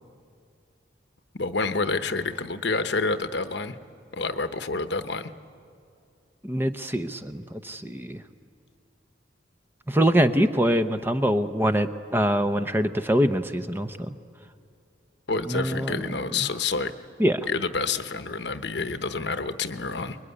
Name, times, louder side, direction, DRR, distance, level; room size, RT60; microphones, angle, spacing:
voice 1, 1.4-3.8 4.1-5.3 15.3-16.9 17.5-20.2, left 4 dB, 65° left, 10 dB, 1.1 m, -28 dB
voice 2, 6.4-8.2 9.9-14.1 15.5-16.0 17.2-17.5, equal, 10° right, 8 dB, 0.7 m, -24 dB
26.5 x 22.5 x 9.9 m, 2.5 s
head